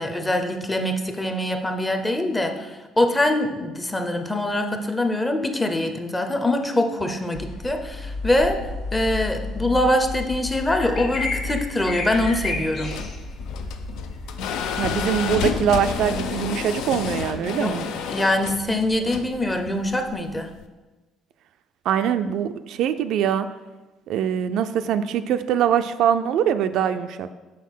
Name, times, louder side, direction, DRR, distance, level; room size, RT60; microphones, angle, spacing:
voice 1, 0.0-8.6 8.9-12.9 17.6-17.7 18.1-20.5, left 1 dB, 15° left, 5 dB, 0.7 m, -23 dB
sound 1, 7.3-16.1, left 2 dB, 60° left, 1.2 m, -32 dB
sound 2, 12.7-20.6, left 7 dB, 80° left, 0.5 m, -30 dB
voice 2, 14.8-17.9 21.9-23.5 24.1-27.3, right 9 dB, 70° right, 10 dB, 0.3 m, -23 dB
6.4 x 4.1 x 5.5 m, 1.2 s
cardioid pair, 115°, 0 cm